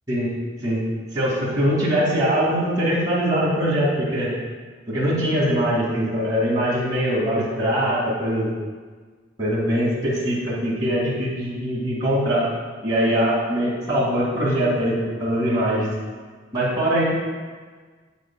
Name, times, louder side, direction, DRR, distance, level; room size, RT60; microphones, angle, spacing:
voice 1, 1.1-4.3 4.9-8.5 9.4-12.5 12.8-15.9 16.5-17.0, equal, 20° right, -10 dB, 2.3 m, -22 dB
8.5 x 8.4 x 2.3 m, 1.5 s
head